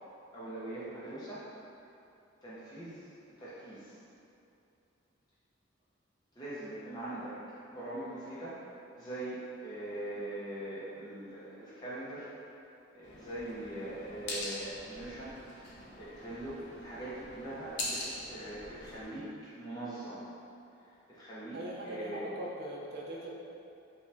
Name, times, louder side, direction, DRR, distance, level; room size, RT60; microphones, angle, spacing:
voice 1, 0.3-1.5 2.4-4.0 6.3-7.4 7.7-8.6 8.9-12.3 12.9-19.3 19.6-20.2 21.1-21.6 21.8-22.4, right 1 dB, 20° left, -11 dB, 0.7 m, -42 dB
sound 1, 13.0-19.0, left 1 dB, 55° left, 0.7 m, -43 dB
voice 2, 21.5-23.3, right 1 dB, 50° right, -4 dB, 0.6 m, -40 dB
5.4 x 2.4 x 3.3 m, 2.7 s
head